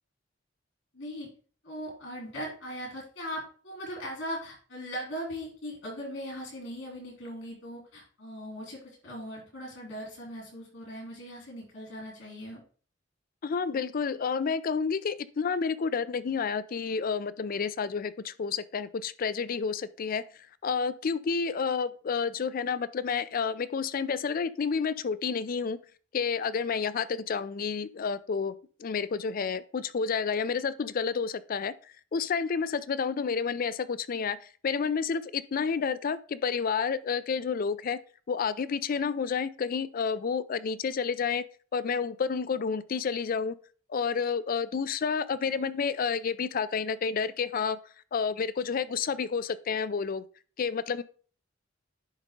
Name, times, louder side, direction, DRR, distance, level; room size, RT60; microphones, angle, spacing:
voice 1, 0.9-1.3 1.6-12.6, equal, 75° left, 3.3 m, -39 dB
voice 2, 13.4-20.2 20.6-25.8 26.1-31.7 32.1-38.0 38.3-41.4 41.7-43.6 43.9-47.8 48.1-50.2 50.6-51.0, left 5 dB, 50° left, 0.4 m, -30 dB
10.5 x 3.7 x 3.7 m
head